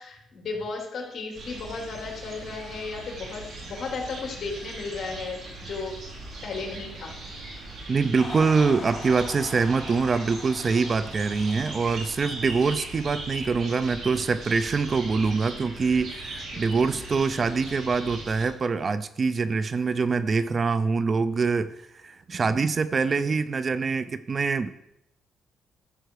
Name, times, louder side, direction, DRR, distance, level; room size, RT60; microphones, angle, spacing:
voice 1, 0.0-5.9 6.4-7.1 16.5-17.0, left 4 dB, 50° left, -1 dB, 3.6 m, -35 dB
sound 1, 1.3-18.5, right 2 dB, 60° right, 3.9 m, -39 dB
voice 2, 7.9-21.7 22.0-24.7, right 4 dB, 40° right, 14 dB, 0.5 m, -24 dB
sound 2, 8.2-14.7, left 3 dB, 30° left, 3.1 m, -43 dB
13.0 x 7.7 x 4.8 m, 0.80 s
cardioid pair, 90°, 0 cm